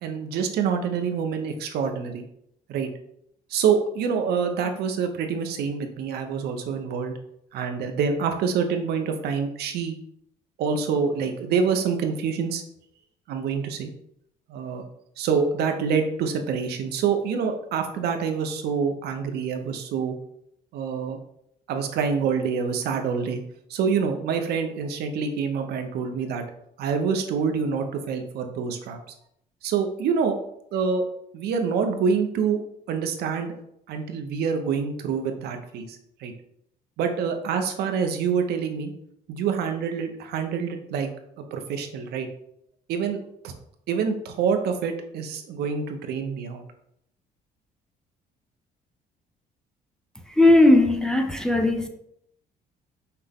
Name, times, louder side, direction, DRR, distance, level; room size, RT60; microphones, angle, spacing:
voice 1, 0.0-2.3 2.7-2.9 3.5-7.1 7.5-10.0 10.6-12.6 13.3-13.9 14.5-14.9 15.2-20.2 20.7-21.2 21.7-23.4 23.7-26.4 26.8-29.0 29.6-30.4 30.7-31.0 31.3-32.6 32.9-33.5 33.9-36.3 37.0-38.9 39.3-41.1 41.4-42.3 42.9-43.2 43.4-43.5 43.9-46.6, right 6 dB, 70° right, 6 dB, 0.7 m, -26 dB
voice 2, 50.3-51.9, left 2 dB, 5° left, 4 dB, 0.5 m, -18 dB
5.7 x 2.1 x 3.5 m, 0.73 s
cardioid pair, 110°, 17 cm